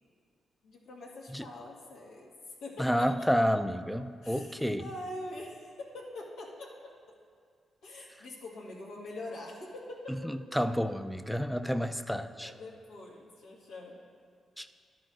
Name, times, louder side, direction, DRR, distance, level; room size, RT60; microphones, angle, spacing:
voice 1, 0.6-2.3 2.6-3.3 4.2-6.9 7.8-10.1 12.4-14.0, left 2 dB, 90° left, -4 dB, 1.7 m, -44 dB
voice 2, 2.8-4.8 10.2-12.5 14.6-14.7, equal, 5° left, 10 dB, 0.4 m, -30 dB
12.5 x 10.5 x 2.6 m, 2.1 s
cardioid pair, 65°, 0 cm